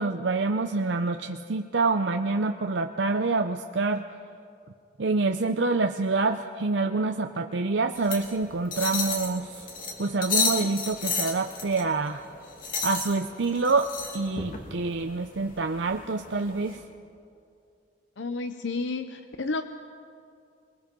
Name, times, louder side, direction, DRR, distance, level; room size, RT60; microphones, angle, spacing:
voice 1, 0.0-4.0 5.0-9.5 10.0-12.2 12.8-13.9 14.1-16.8, right 3 dB, 75° right, 5 dB, 0.7 m, -26 dB
sound 1, 8.0-16.7, left 4 dB, 50° left, 2.7 m, -33 dB
voice 2, 18.2-19.6, left 3 dB, 80° left, 8 dB, 0.7 m, -31 dB
28.0 x 20.0 x 5.3 m, 2.5 s
head